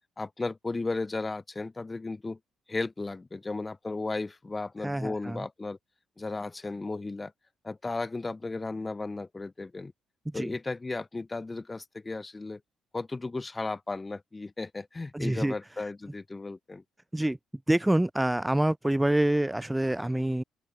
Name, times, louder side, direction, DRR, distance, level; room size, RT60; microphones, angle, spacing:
voice 1, 0.2-2.4 2.7-5.8 6.2-7.3 7.6-9.9 10.3-12.6 12.9-16.8, left 3 dB, 15° left, 1.0 m, -35 dB
voice 2, 4.8-5.5 10.3-10.5 15.1-15.5 17.1-17.4 17.7-20.4, right 1 dB, 5° right, 0.7 m, -26 dB
open air
cardioid pair, 130°, 0 cm